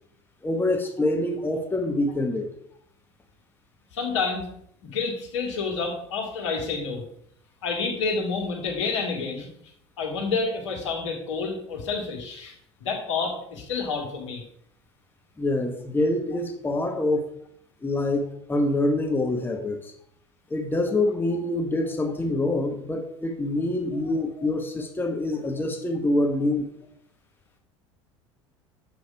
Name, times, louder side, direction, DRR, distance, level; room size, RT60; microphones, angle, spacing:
voice 1, 0.4-2.5 15.4-17.3 17.8-19.9 20.5-26.7, left 2 dB, 15° left, 4 dB, 1.2 m, -25 dB
voice 2, 3.9-4.5 4.8-7.0 7.6-9.5 10.0-12.5 12.8-14.4, left 4 dB, 70° left, 1 dB, 2.3 m, -29 dB
7.3 x 6.2 x 4.7 m, 0.69 s
figure-of-eight pair, 70°, 15 cm